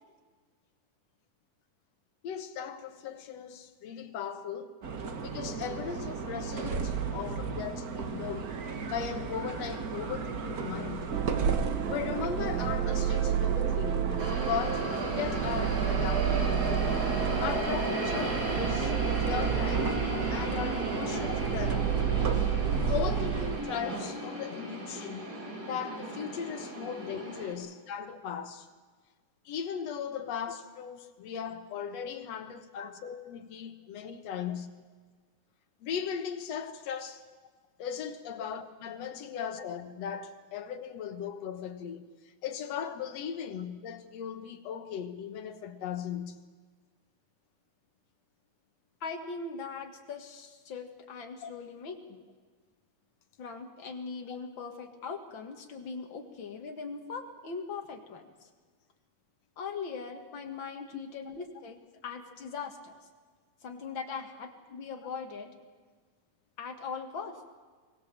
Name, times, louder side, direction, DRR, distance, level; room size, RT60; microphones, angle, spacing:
voice 1, 2.2-4.8 5.3-8.6 8.9-11.2 11.9-17.0 17.4-19.9 20.3-22.0 22.9-25.3 25.7-28.7 29.5-34.7 35.8-37.2 37.8-46.4 51.4-51.5, left 8 dB, 60° left, 2.2 m, -38 dB
sound 1, 4.8-23.6, right 5 dB, 55° right, 1.0 m, -35 dB
sound 2, 11.1-23.6, right 10 dB, 75° right, 1.2 m, -31 dB
sound 3, 14.2-27.5, right 1 dB, 30° right, 3.4 m, -35 dB
voice 2, 49.0-52.3 53.4-58.3 59.6-63.0 63.6-65.6 66.6-67.5, left 5 dB, 45° left, 2.2 m, -40 dB
23.0 x 19.5 x 7.5 m
omnidirectional pair, 3.6 m